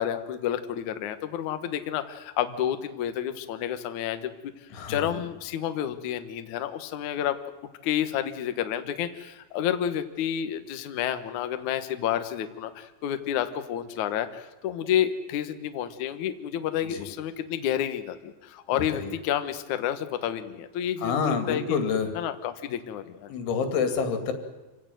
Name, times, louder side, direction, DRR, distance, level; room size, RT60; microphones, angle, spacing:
voice 1, 0.0-4.3 4.9-7.4 7.8-21.8 22.2-23.3, left 10 dB, 65° left, 8 dB, 2.0 m, -30 dB
voice 2, 4.7-5.2 16.9-17.1 18.7-19.1 21.0-22.1 23.3-24.3, left 5 dB, 85° left, 7 dB, 4.9 m, -28 dB
26.5 x 17.0 x 9.2 m, 1.1 s
omnidirectional pair, 5.3 m